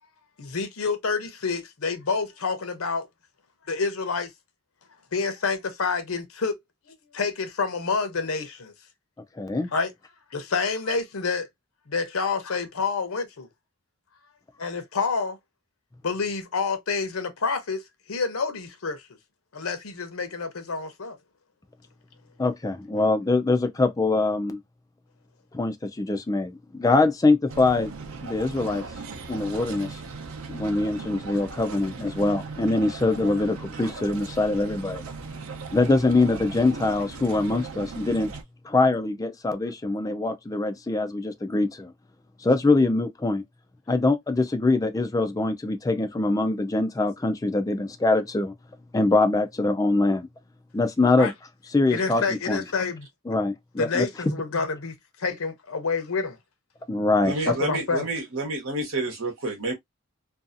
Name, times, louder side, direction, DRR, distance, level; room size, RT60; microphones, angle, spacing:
voice 1, 0.4-3.1 3.7-4.3 5.1-6.6 6.9-8.7 9.7-9.9 10.3-11.5 11.9-13.5 14.6-15.4 16.0-17.8 18.1-19.1 19.5-21.2 51.2-51.3 51.9-53.1 53.8-56.4 57.5-58.1, left 4 dB, 80° left, 0.7 m, -28 dB
voice 2, 9.4-9.7 22.4-24.6 25.5-27.9 28.2-28.8 29.3-30.0 30.5-35.0 35.7-38.3 38.6-41.9 42.4-43.4 43.9-48.5 48.9-50.3 50.7-51.3 51.7-52.6 53.3-54.4 56.9-57.3, left 2 dB, 15° left, 0.4 m, -23 dB
sound 1, 27.5-38.4, right 4 dB, 90° right, 0.6 m, -38 dB
voice 3, 57.2-59.7, right 2 dB, 70° right, 1.1 m, -29 dB
2.6 x 2.3 x 2.5 m
head